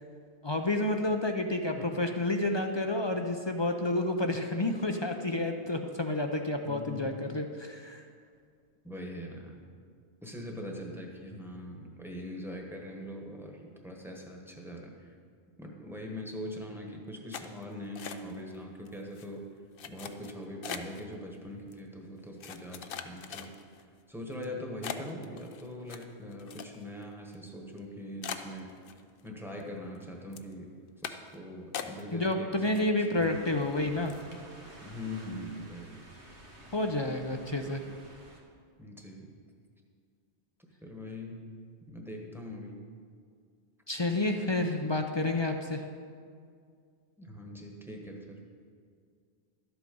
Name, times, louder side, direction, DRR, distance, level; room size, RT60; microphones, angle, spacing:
voice 1, 0.4-8.0 32.1-34.1 36.7-37.8 43.9-45.8, left 2 dB, 35° left, 5 dB, 0.5 m, -30 dB
voice 2, 6.6-7.1 8.8-9.6 10.2-15.1 15.6-19.4 19.9-23.5 24.1-28.7 29.2-30.8 31.0-32.9 33.1-33.5 34.8-36.0 37.6-37.9 38.8-39.3 40.8-41.5 41.9-42.8 44.4-44.5 47.2-48.4, left 1 dB, ahead, 0 dB, 1.2 m, -42 dB
sound 1, 17.3-18.6 18.9-19.3 19.8-21.0 21.7-21.8 22.4-23.8 24.3-24.5 24.8-27.0 27.3-27.4 27.8-27.9 28.2-29.3 29.6-30.0 30.3-30.5 31.0-31.4 31.7-32.3 32.6-33.3 33.6-33.7 34.1-34.3, left 8 dB, 60° left, 0.8 m, -41 dB
sound 2, 33.1-38.4, right 1 dB, 90° right, 1.7 m, -51 dB
12.5 x 8.0 x 5.3 m, 2.2 s
omnidirectional pair, 1.1 m